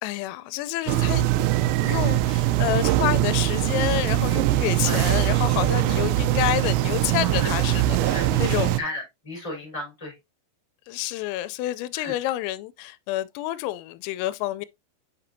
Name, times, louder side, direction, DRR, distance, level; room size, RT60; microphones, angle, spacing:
voice 1, 0.0-1.4 1.9-8.7 10.9-14.7, left 15 dB, 90° left, 3.2 m, -28 dB
sound 1, 0.9-8.8, right 14 dB, 90° right, 3.3 m, -22 dB
voice 2, 7.9-10.1 11.9-12.1, left 1 dB, 5° left, 3.0 m, -34 dB
7.2 x 5.9 x 2.6 m
omnidirectional pair, 5.8 m